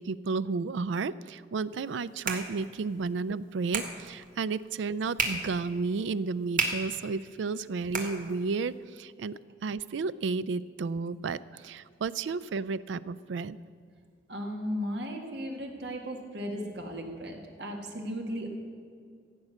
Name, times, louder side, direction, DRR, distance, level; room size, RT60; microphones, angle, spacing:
voice 1, 0.0-13.6, right 4 dB, 90° right, 17 dB, 0.4 m, -32 dB
sound 1, 1.7-8.7, right 4 dB, 45° right, 1.5 m, -37 dB
voice 2, 14.3-18.5, equal, 70° right, 2 dB, 1.8 m, -36 dB
15.5 x 8.6 x 6.4 m, 2.1 s
head